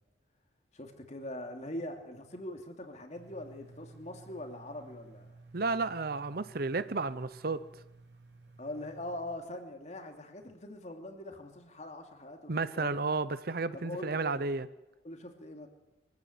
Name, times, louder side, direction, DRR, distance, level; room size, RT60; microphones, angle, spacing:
voice 1, 0.7-5.3 8.6-13.0 13.7-14.5 15.0-15.7, left 1 dB, 40° left, 5 dB, 2.8 m, -42 dB
sound 1, 3.1-9.2, right 2 dB, 80° right, 3.6 m, -55 dB
voice 2, 5.5-7.6 12.5-14.7, right 3 dB, 60° right, 15 dB, 0.8 m, -32 dB
24.0 x 15.0 x 8.9 m, 0.97 s
head